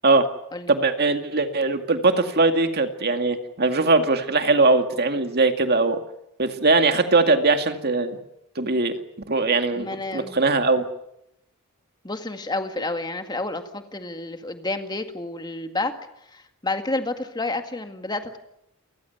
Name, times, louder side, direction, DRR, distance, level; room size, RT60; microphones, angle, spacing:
voice 1, 0.7-6.0 6.4-8.2 8.6-8.9 9.3-10.8, right 3 dB, 45° right, 7 dB, 2.2 m, -20 dB
voice 2, 9.8-10.4 12.0-15.9 16.3-18.4, left 2 dB, 20° left, 7 dB, 1.9 m, -30 dB
29.0 x 15.5 x 9.3 m, 0.83 s
head